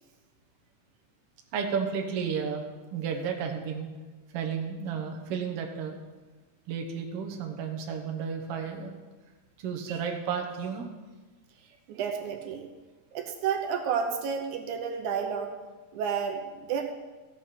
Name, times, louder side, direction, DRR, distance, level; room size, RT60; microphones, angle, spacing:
voice 1, 1.5-2.6 2.9-3.9 4.3-6.0 6.7-9.0 9.6-10.9, right 6 dB, 60° right, 3 dB, 2.0 m, -32 dB
voice 2, 11.9-12.7 13.1-15.5 15.9-16.8, right 7 dB, 80° right, 4 dB, 2.3 m, -31 dB
15.0 x 7.0 x 5.9 m, 1.3 s
omnidirectional pair, 3.5 m